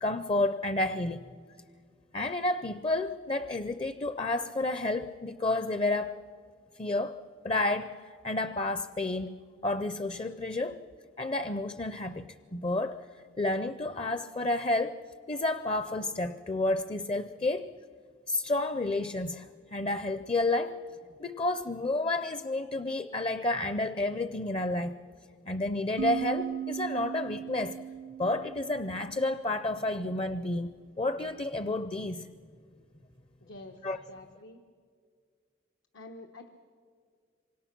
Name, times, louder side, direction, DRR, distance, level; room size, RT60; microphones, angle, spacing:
voice 1, 0.0-1.2 2.1-6.2 6.8-9.4 9.6-10.8 11.2-13.0 13.4-15.0 15.3-17.7 18.3-20.8 21.2-25.0 25.5-27.8 28.2-30.7 31.0-32.3 33.8-34.0, left 2 dB, 30° left, 12 dB, 0.5 m, -30 dB
sound 1, 26.0-29.6, right 7 dB, 70° right, 0.6 m, -37 dB
voice 2, 33.4-33.8 34.1-34.6 35.9-36.5, left 2 dB, 85° left, 6 dB, 1.2 m, -47 dB
27.0 x 25.0 x 6.0 m, 2.1 s
head